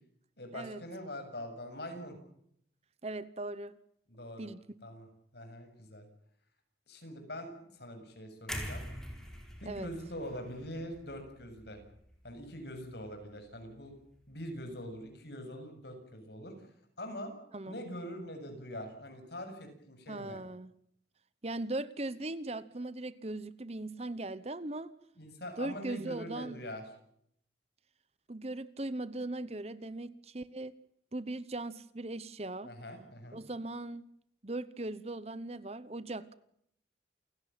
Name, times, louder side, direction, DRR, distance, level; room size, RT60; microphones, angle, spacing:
voice 1, 0.4-2.2 4.1-4.5 4.8-5.1 5.3-6.1 6.9-8.9 9.6-11.8 12.2-14.0 14.3-17.3 17.7-20.4 25.2-26.8 32.6-33.4, equal, 60° left, 6 dB, 7.4 m, -43 dB
voice 2, 3.0-3.8 4.4-4.6 9.7-9.9 17.5-17.8 20.1-20.7 21.4-24.9 25.6-26.6 28.3-30.7 31.1-32.7 33.3-34.0 34.4-36.3, right 2 dB, 35° right, 16 dB, 1.0 m, -39 dB
sound 1, 8.5-12.5 12.9-13.1, equal, 5° left, 4.7 m, -44 dB
29.0 x 17.0 x 9.0 m, 0.72 s
head